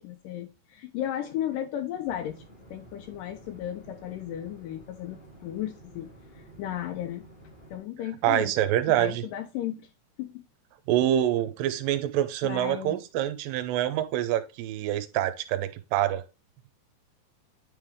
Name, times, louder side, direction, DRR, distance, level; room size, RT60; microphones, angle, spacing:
voice 1, 0.0-2.4 2.7-6.1 6.4-7.2 7.7-8.5 8.9-9.9 10.2-10.5 12.4-13.0, left 11 dB, 85° left, 1.9 m, -35 dB
sound 1, 2.0-7.8, right 1 dB, 55° left, 0.5 m, -51 dB
voice 2, 8.2-9.2 10.9-16.2, right 12 dB, 80° right, 2.2 m, -26 dB
9.4 x 3.4 x 3.6 m
omnidirectional pair, 4.4 m